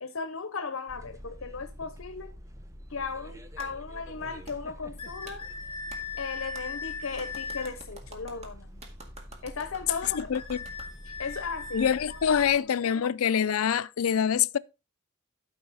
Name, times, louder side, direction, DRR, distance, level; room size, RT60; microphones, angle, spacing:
voice 1, 0.0-2.3 2.9-5.5 6.2-8.9 9.4-10.2 11.1-12.9, left 5 dB, 70° left, 0.9 m, -37 dB
sound 1, 0.9-12.6, equal, 15° right, 0.9 m, -46 dB
Clapping, 3.6-3.7 4.5-4.6 5.3-5.4 5.9-6.0 6.5-6.7 7.2-10.9, right 2 dB, 30° right, 2.0 m, -48 dB
sound 2, 5.0-7.8 9.9-12.5, left 5 dB, 25° left, 1.8 m, -39 dB
voice 2, 10.1-10.6 11.7-14.6, left 8 dB, 90° left, 0.4 m, -25 dB
12.5 x 5.6 x 4.1 m
head